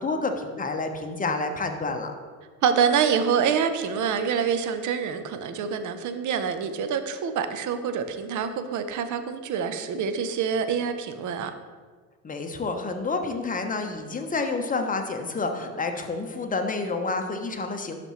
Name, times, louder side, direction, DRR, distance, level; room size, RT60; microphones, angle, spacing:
voice 1, 0.0-2.1 12.2-18.0, left 3 dB, 15° left, 5 dB, 1.0 m, -29 dB
voice 2, 2.6-11.5, right 7 dB, 40° right, 9 dB, 0.8 m, -26 dB
12.0 x 4.2 x 3.2 m, 1.5 s
hypercardioid pair, 70°, 46 cm